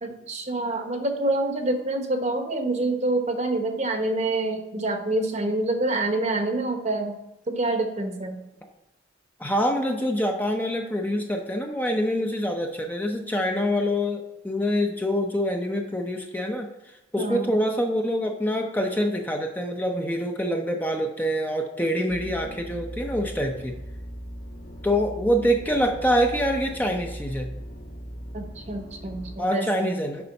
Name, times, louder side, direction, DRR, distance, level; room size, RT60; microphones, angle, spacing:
voice 1, 0.0-7.1 7.5-8.4 17.2-17.6 28.3-29.9, right 2 dB, 35° right, 5 dB, 1.0 m, -27 dB
voice 2, 9.4-23.8 24.8-27.5 29.4-30.2, equal, 10° left, 2 dB, 0.6 m, -25 dB
sound 1, 22.1-29.4, equal, 65° left, 1.6 m, -39 dB
6.9 x 5.5 x 5.3 m, 0.97 s
head